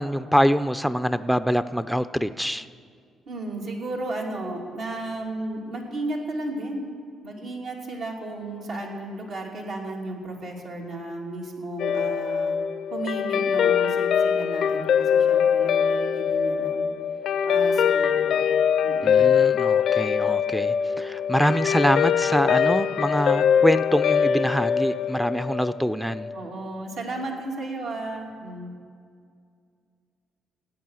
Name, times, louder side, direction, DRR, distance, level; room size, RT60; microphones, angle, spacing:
voice 1, 0.0-2.7 19.0-26.3, equal, ahead, 13 dB, 0.4 m, -24 dB
voice 2, 3.3-6.9 7.2-12.6 12.9-16.9 17.4-18.5 18.8-19.2 26.3-28.8, right 2 dB, 75° right, -1 dB, 2.6 m, -34 dB
Guitar, 11.8-26.4, left 7 dB, 70° left, 0.4 m, -23 dB
16.0 x 8.8 x 6.3 m, 2.2 s
cardioid pair, 90°, 0 cm